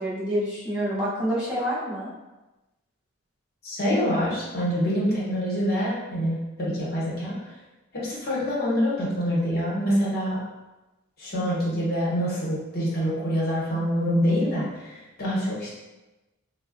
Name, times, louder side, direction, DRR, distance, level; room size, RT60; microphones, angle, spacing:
voice 1, 0.0-2.1, equal, 5° right, -10 dB, 0.7 m, -27 dB
voice 2, 3.6-7.3 7.9-10.4 11.2-15.7, equal, 50° left, -6 dB, 0.9 m, -26 dB
3.7 x 2.0 x 2.4 m, 1.1 s
head